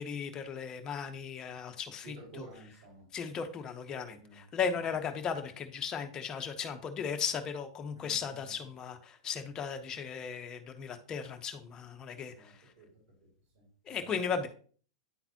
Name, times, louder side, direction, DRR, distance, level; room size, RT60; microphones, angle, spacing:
voice 1, 0.0-2.4 3.1-12.6 13.9-14.5, left 6 dB, 30° left, 7 dB, 1.1 m, -36 dB
voice 2, 2.0-3.1 4.1-4.7 7.9-8.6 12.2-12.9 13.2-13.3 13.5-14.5, right 3 dB, 60° right, -6 dB, 3.5 m, -53 dB
10.5 x 3.9 x 3.0 m, 0.43 s
hypercardioid pair, 115°, 2 cm